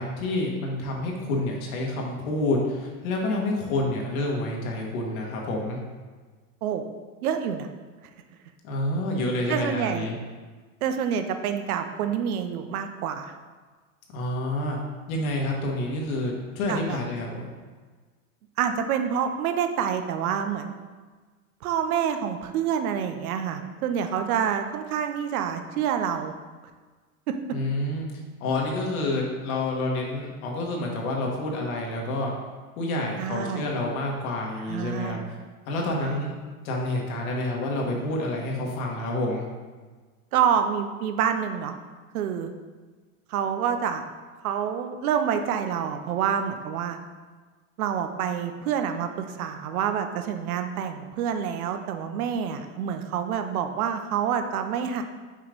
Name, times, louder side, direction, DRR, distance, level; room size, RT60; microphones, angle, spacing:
voice 1, 0.0-5.8 8.6-10.1 14.1-14.8 15.1-17.5 27.5-28.1 28.4-32.3 32.8-35.2 35.7-36.3 36.6-39.5, left 2 dB, 70° left, -1 dB, 1.6 m, -28 dB
voice 2, 7.2-7.7 9.5-10.1 10.8-13.3 16.7-17.0 18.6-20.7 21.6-26.3 27.3-27.4 33.2-33.6 34.7-35.2 36.0-36.2 40.3-41.7 42.1-42.5 43.3-44.0 44.4-47.0 47.8-55.0, right 8 dB, 75° right, 7 dB, 0.8 m, -27 dB
5.7 x 3.2 x 5.2 m, 1.4 s
supercardioid pair, 140°, 44 cm